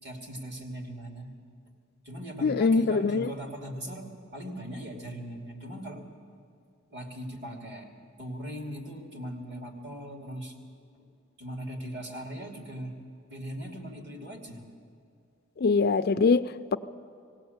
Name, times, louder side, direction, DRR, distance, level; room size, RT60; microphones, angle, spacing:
voice 1, 0.0-1.3 2.0-6.0 6.9-7.9 8.2-10.5 10.9-11.1 11.4-13.0 13.3-14.7, equal, 55° right, 2.7 m, -39 dB
voice 2, 2.4-3.3 15.6-16.8, left 4 dB, 45° left, 0.4 m, -23 dB
18.5 x 17.5 x 8.0 m
head